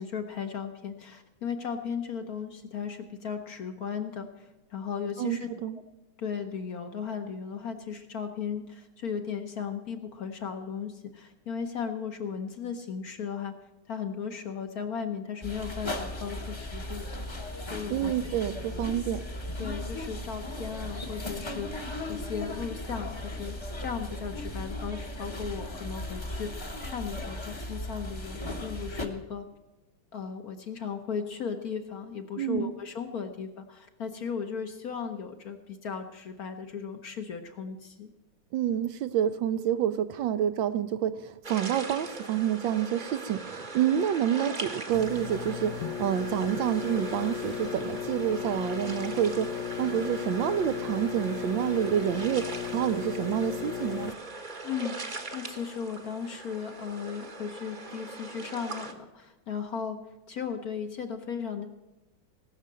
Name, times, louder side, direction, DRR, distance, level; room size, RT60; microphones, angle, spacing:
voice 1, 0.0-5.5 6.2-13.5 13.9-17.2 17.6-18.9 19.6-21.7 22.1-29.4 30.1-38.1 54.6-60.0 60.3-61.7, left 6 dB, 55° left, 6 dB, 1.2 m, -36 dB
voice 2, 5.2-5.8 17.9-19.2 32.4-32.7 38.5-54.1, right 10 dB, 75° right, 12 dB, 1.2 m, -28 dB
sound 1, 15.4-29.1, left 1 dB, 20° left, 0.8 m, -37 dB
sound 2, 41.4-58.9, right 3 dB, 30° right, 0.9 m, -40 dB
sound 3, 44.9-54.1, left 11 dB, 75° left, 1.4 m, -36 dB
18.5 x 6.5 x 7.5 m, 1.1 s
omnidirectional pair, 2.3 m